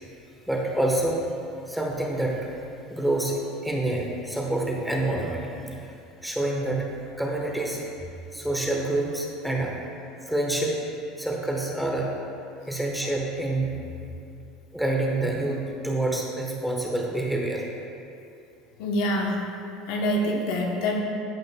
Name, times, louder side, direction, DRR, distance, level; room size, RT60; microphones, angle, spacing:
voice 1, 0.5-1.2 1.7-2.5 2.9-5.9 6.2-6.9 7.2-7.8 8.3-9.7 10.3-10.8 11.2-12.1 12.7-13.7 14.7-17.6, right 2 dB, 5° right, -1 dB, 1.2 m, -27 dB
voice 2, 18.8-19.5 19.9-21.0, left 1 dB, 70° left, 0 dB, 1.0 m, -25 dB
14.5 x 5.3 x 2.3 m, 2.7 s
supercardioid pair, 105°, 0 cm